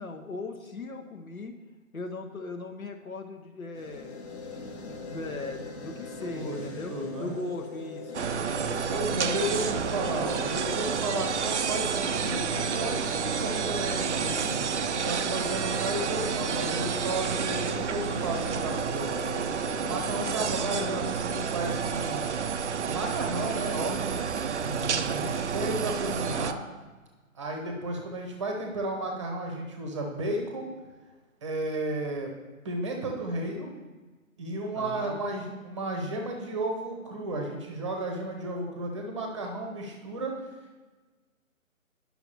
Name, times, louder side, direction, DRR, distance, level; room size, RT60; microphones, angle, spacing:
voice 1, 0.0-1.5 1.9-4.3 5.0-6.9 7.2-8.3 24.6-25.1 34.8-35.2, left 2 dB, 80° left, 4 dB, 1.0 m, -38 dB
sound 1, 3.7-22.8, left 4 dB, 50° left, 1.0 m, -41 dB
voice 2, 6.9-7.4 8.9-14.7 15.0-19.2 19.8-22.3 22.8-24.2 25.1-26.6 27.3-30.7 31.4-32.3 32.6-33.7 34.4-40.3, right 2 dB, 20° right, 1 dB, 0.8 m, -33 dB
sound 2, 8.1-26.5, right 7 dB, 55° right, 0.5 m, -30 dB
10.5 x 5.8 x 2.9 m, 1.3 s
figure-of-eight pair, 145°, 41 cm